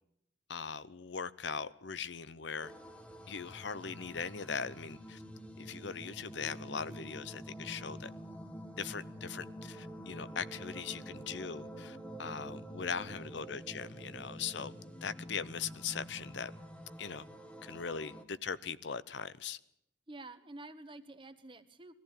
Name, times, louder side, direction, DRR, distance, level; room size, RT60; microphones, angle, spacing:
voice 1, 0.5-2.7 3.3-5.2 5.6-8.1 8.8-14.7 15.0-16.5 17.0-17.2 17.6-19.6, left 6 dB, 70° left, 0.7 m, -40 dB
sound 1, 2.6-18.2, equal, 5° left, 1.2 m, -47 dB
voice 2, 13.0-13.3 20.1-21.9, right 2 dB, 25° right, 1.2 m, -50 dB
21.5 x 14.5 x 9.0 m
head